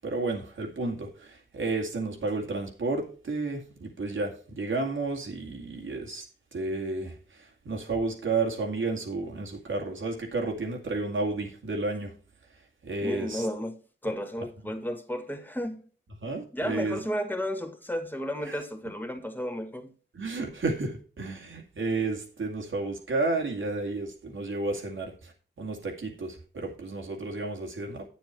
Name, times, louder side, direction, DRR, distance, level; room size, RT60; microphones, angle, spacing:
voice 1, 0.0-6.2 6.5-12.1 12.8-13.5 16.2-17.0 18.5-18.6 20.1-28.1, right 3 dB, 85° right, 2.4 m, -32 dB
voice 2, 13.0-13.7 14.0-15.8 16.5-19.9, equal, 10° left, 1.7 m, -33 dB
9.1 x 7.1 x 4.5 m
wide cardioid pair, 65°, 20 cm